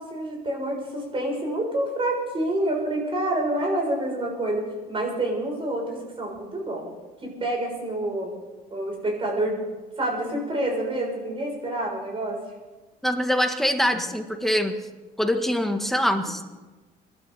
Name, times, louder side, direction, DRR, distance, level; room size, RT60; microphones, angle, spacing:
voice 1, 0.0-6.9 7.2-8.3 8.7-12.4, right 1 dB, 30° right, 0 dB, 7.1 m, -28 dB
voice 2, 13.0-14.8 15.2-16.4, equal, ahead, 5 dB, 1.7 m, -24 dB
25.0 x 12.0 x 4.2 m, 1.2 s
cardioid pair, 110°, 17 cm